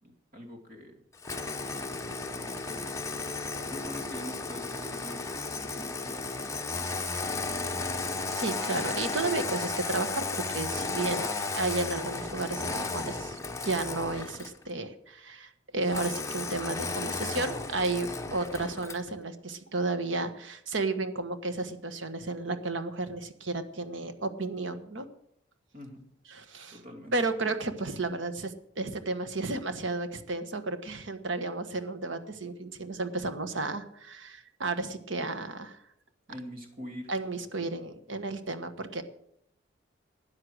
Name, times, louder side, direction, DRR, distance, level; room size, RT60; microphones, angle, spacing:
voice 1, 0.0-0.9 1.6-7.0 25.7-26.0 26.7-27.1 36.3-37.1, equal, 45° right, 3 dB, 2.7 m, -46 dB
Engine starting, 1.2-14.6 15.9-19.1, left 3 dB, 15° left, 1.0 m, -34 dB
voice 2, 8.3-25.1 26.3-26.8 27.1-35.8 37.1-39.0, right 3 dB, 75° right, 10 dB, 1.3 m, -33 dB
13.0 x 9.4 x 6.3 m, 0.74 s
head